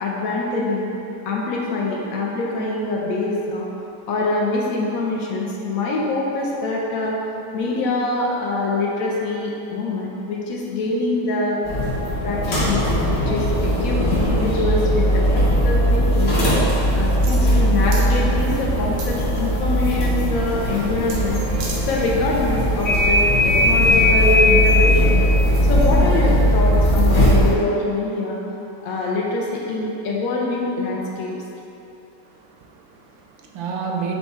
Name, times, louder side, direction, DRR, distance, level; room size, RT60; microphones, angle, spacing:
voice 1, 0.0-0.9 1.3-3.6 4.1-7.1 7.5-11.6 12.2-12.8 13.1-14.0 14.3-16.3 17.0-25.3 25.7-28.4 28.8-31.3, left 2 dB, 75° left, -3 dB, 0.8 m, -24 dB
sound 1, 11.6-27.5, equal, 50° left, 1.1 m, -18 dB
sound 2, 17.2-17.6 17.9-18.1 19.0-19.6 21.1-21.2 21.5-21.8 22.3-22.4, right 4 dB, 65° right, 0.9 m, -33 dB
voice 2, 32.2-34.2, right 5 dB, 85° right, 0 dB, 1.3 m, -31 dB
5.7 x 2.2 x 4.1 m, 3.0 s
omnidirectional pair, 2.0 m